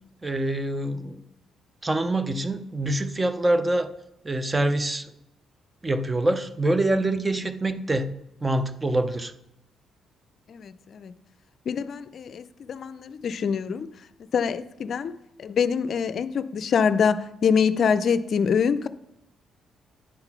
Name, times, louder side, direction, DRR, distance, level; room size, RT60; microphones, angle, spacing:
voice 1, 0.2-1.2 1.8-3.9 4.2-5.1 5.8-8.1 8.4-9.3, right 1 dB, 20° right, 0.6 m, -25 dB
voice 2, 10.5-11.1 11.7-13.9 14.3-15.1 15.4-18.9, left 6 dB, 55° left, 0.4 m, -25 dB
9.5 x 3.9 x 5.9 m
cardioid pair, 90°, 0 cm